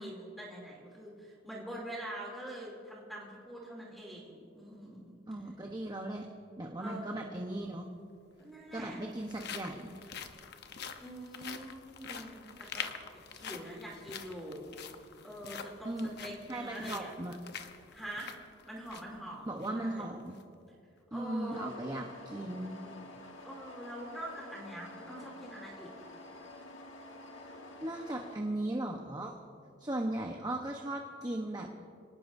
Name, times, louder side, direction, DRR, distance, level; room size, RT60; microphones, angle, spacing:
voice 1, 0.0-5.2 6.8-7.3 8.4-9.0 11.0-12.9 13.3-14.6 15.2-17.1 17.9-18.3 18.6-20.0 21.1-21.7 23.4-25.9, right 1 dB, ahead, -3 dB, 2.9 m, -44 dB
voice 2, 5.3-6.3 6.6-7.9 8.7-10.0 15.8-16.1 16.5-17.4 19.5-20.4 21.1-22.8 27.4-27.5 27.8-29.3 29.8-31.7, right 1 dB, 20° right, 1 dB, 1.0 m, -37 dB
sound 1, 7.6-7.7 8.6-19.2 19.6-19.7 20.2-20.4, left 7 dB, 60° left, 0.9 m, -46 dB
sound 2, 21.5-28.4, left 2 dB, 85° left, 1.7 m, -49 dB
26.5 x 18.5 x 2.7 m, 2.4 s
head